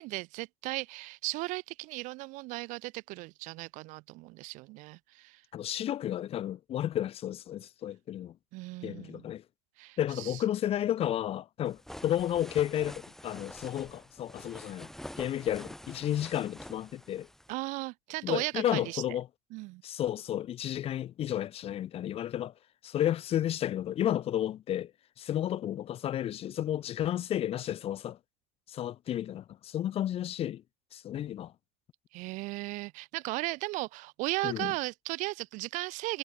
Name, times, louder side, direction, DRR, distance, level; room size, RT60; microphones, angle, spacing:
voice 1, 0.0-5.4 8.5-9.3 9.8-10.4 17.5-19.0 19.5-19.8 32.1-36.2, right 22 dB, 70° right, 0.6 m, -36 dB
voice 2, 5.5-8.3 8.8-9.4 10.0-14.9 15.2-17.3 18.2-19.3 19.8-22.5 22.8-24.9 25.2-28.2 28.7-30.6 30.9-31.5 34.4-34.7, left 11 dB, 50° left, 0.6 m, -32 dB
sound 1, 11.7-17.5, equal, 5° left, 4.7 m, -47 dB
supercardioid pair, 85°, 13 cm